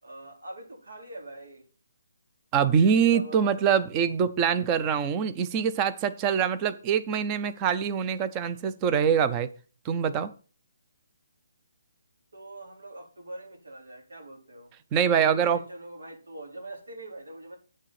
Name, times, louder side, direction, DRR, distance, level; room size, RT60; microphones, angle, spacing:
voice 1, 0.0-1.6 2.9-3.6 12.3-14.7 15.0-17.6, right 2 dB, 85° right, 2 dB, 4.1 m, -43 dB
voice 2, 2.5-9.5 9.8-10.3 14.9-15.6, right 7 dB, 15° right, 13 dB, 0.4 m, -24 dB
9.1 x 6.4 x 5.8 m, 0.39 s
hypercardioid pair, 180°, 0 cm